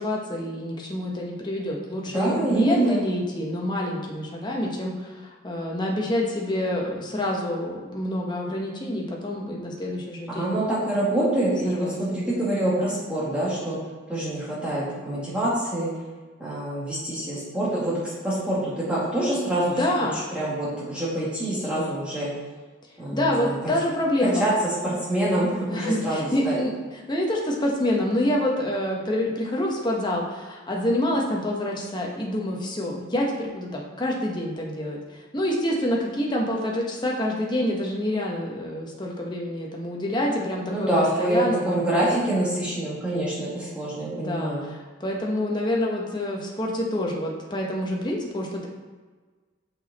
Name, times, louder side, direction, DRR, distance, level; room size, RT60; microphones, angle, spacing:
voice 1, 0.0-10.5 11.7-11.9 19.7-20.2 23.1-24.5 25.7-26.7 27.1-41.8 44.1-48.7, left 1 dB, 20° left, -2 dB, 1.0 m, -27 dB
voice 2, 2.1-3.0 10.3-13.8 14.1-15.9 16.4-19.8 20.1-22.3 23.0-23.7 24.2-24.5 24.8-26.6 40.7-44.6, right 1 dB, 5° right, -8 dB, 2.1 m, -26 dB
6.2 x 5.6 x 4.1 m, 1.3 s
head